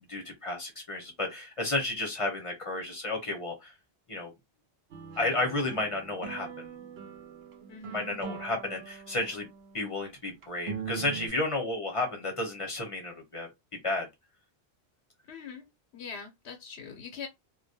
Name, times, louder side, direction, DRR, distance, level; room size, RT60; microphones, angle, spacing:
voice 1, 0.1-3.7 4.1-4.3 5.2-6.6 7.9-9.5 9.7-13.5 13.8-14.1, left 2 dB, 35° left, 0.7 m, -32 dB
sound 1, 4.9-9.9 10.4-11.3, right 7 dB, 70° right, 0.8 m, -42 dB
voice 2, 7.7-8.2 15.3-15.7 15.9-17.3, left 6 dB, 75° left, 0.8 m, -43 dB
2.2 x 2.1 x 2.6 m
omnidirectional pair, 1.1 m